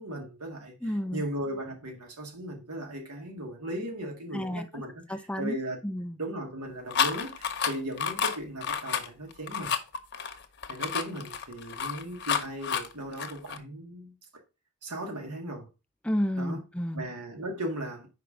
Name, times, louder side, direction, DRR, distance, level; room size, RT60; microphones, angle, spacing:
voice 1, 0.0-5.8 6.2-9.7 10.7-14.1 14.8-15.7 16.4-16.6 16.9-18.1, right 1 dB, 90° right, 2.0 m, -37 dB
voice 2, 0.8-1.2 4.3-4.6 5.1-5.6 5.8-6.2 16.0-17.1, equal, 5° left, 0.4 m, -31 dB
sound 1, 6.9-13.6, left 7 dB, 50° left, 0.7 m, -30 dB
5.1 x 4.7 x 4.9 m
head